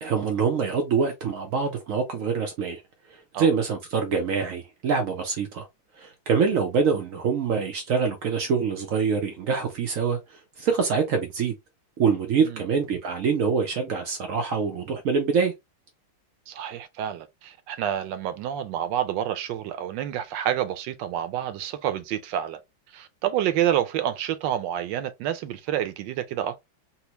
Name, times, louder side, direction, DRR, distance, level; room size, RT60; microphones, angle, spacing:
voice 1, 0.0-2.8 3.4-5.7 5.9-11.5 12.0-15.5, right 5 dB, 90° right, 0.7 m, -25 dB
voice 2, 16.5-22.6 22.9-26.6, right 11 dB, 75° right, 1.1 m, -28 dB
4.3 x 2.0 x 2.8 m
omnidirectional pair, 2.2 m